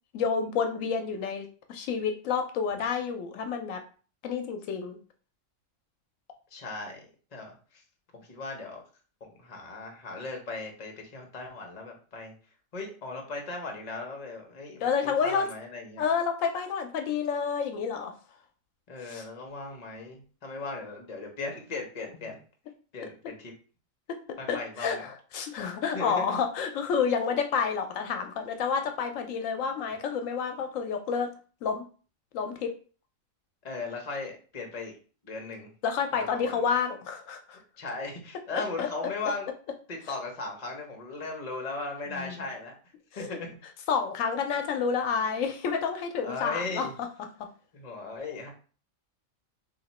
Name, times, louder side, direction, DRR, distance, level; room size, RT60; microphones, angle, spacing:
voice 1, 0.1-3.8 4.2-5.0 14.8-15.5 16.0-18.1 19.0-19.3 24.5-31.3 31.6-31.8 32.3-32.7 35.8-37.6 38.5-38.9 42.1-42.3 43.1-43.4 43.9-46.9 47.4-47.5, left 6 dB, 80° left, 6 dB, 0.9 m, -29 dB
voice 2, 6.5-7.1 7.3-7.8 8.3-8.8 9.4-12.3 12.7-16.0 18.9-22.4 22.9-23.5 24.4-25.1 25.9-26.4 33.6-35.0 35.2-35.7 36.1-36.6 37.8-39.5 39.9-42.7 43.1-43.5 46.2-46.9 47.7-48.5, left 3 dB, 35° left, 1 dB, 0.9 m, -37 dB
2.8 x 2.8 x 4.1 m, 0.39 s
omnidirectional pair, 1.4 m